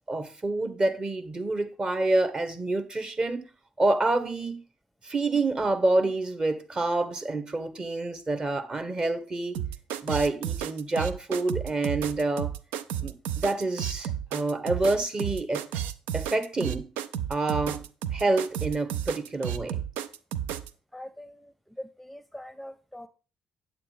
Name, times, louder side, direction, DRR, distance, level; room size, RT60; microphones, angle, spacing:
voice 1, 0.1-3.5 3.8-4.6 5.0-9.6 10.0-12.5 13.0-15.6 16.1-16.9 17.3-17.8 18.1-19.8, right 2 dB, 30° right, 1.5 m, -27 dB
sound 1, 9.5-20.7, right 10 dB, 70° right, 0.5 m, -32 dB
voice 2, 20.9-23.1, left 1 dB, ahead, 0.8 m, -43 dB
8.8 x 8.1 x 3.5 m
figure-of-eight pair, 45°, 3 cm